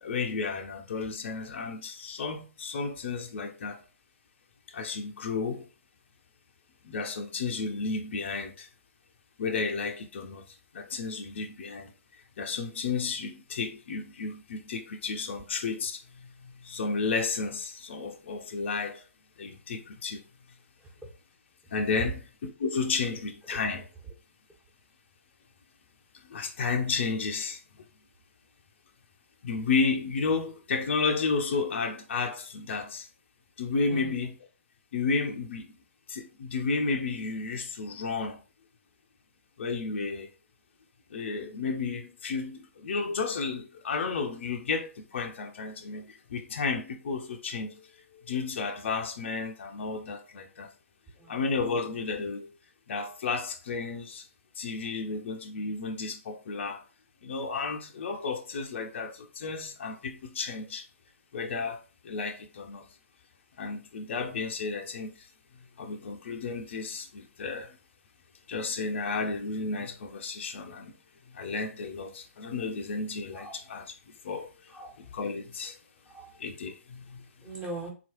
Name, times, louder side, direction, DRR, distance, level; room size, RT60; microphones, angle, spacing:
voice 1, 0.0-3.8 4.7-5.7 6.8-8.7 9.4-11.9 12.4-19.0 19.4-20.2 21.7-22.2 22.4-23.9 26.2-27.6 29.4-33.1 33.6-34.3 34.9-35.8 36.1-38.4 39.6-40.3 41.1-50.7 51.3-52.5 52.9-54.3 54.6-56.8 57.2-60.8 61.3-62.9 63.6-65.3 65.8-67.8 68.5-71.0 71.3-74.8 75.1-75.8 76.4-77.3, left 4 dB, 50° left, 0.7 m, -32 dB
voice 2, 76.0-76.4 77.4-77.9, right 2 dB, 10° right, 1.4 m, -41 dB
4.0 x 3.0 x 2.9 m
figure-of-eight pair, 125°, 8 cm